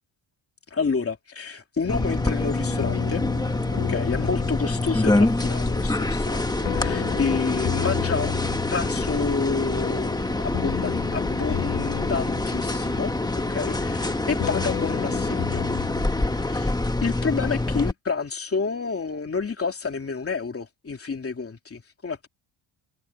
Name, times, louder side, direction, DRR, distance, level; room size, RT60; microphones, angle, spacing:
voice 1, 0.7-3.2 3.7-15.7 16.4-16.7 17.0-22.3, left 5 dB, 25° left, 3.0 m, -29 dB
sound 1, 1.8-17.3, left 11 dB, 70° left, 3.1 m, -34 dB
sound 2, 1.9-17.9, left 2 dB, 10° left, 1.2 m, -26 dB
cardioid pair, 125°, 50 cm